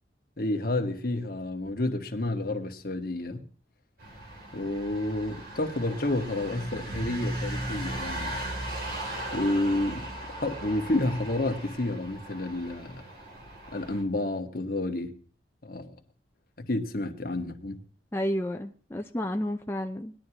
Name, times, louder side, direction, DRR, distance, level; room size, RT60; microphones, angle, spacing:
voice 1, 0.4-3.4 4.5-8.4 9.3-10.1 10.4-13.0 13.7-15.1 15.6-15.9 16.6-17.8, left 2 dB, 55° left, 1.5 m, -30 dB
sound 1, 4.0-14.0, right 1 dB, 55° right, 2.9 m, -37 dB
voice 2, 18.1-20.1, left 1 dB, 15° left, 0.5 m, -31 dB
20.0 x 11.0 x 2.9 m
head